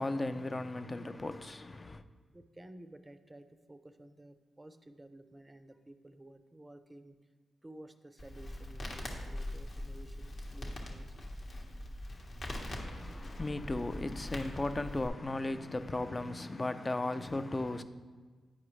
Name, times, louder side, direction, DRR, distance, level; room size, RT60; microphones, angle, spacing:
voice 1, 0.0-2.0 12.6-17.8, left 2 dB, 30° left, 0.5 m, -36 dB
voice 2, 2.3-7.2 7.6-11.3, right 1 dB, 20° right, 0.5 m, -54 dB
Crackle, 8.2-15.1, left 1 dB, 60° left, 1.3 m, -42 dB
9.7 x 4.8 x 3.1 m
cardioid pair, 55°, 0 cm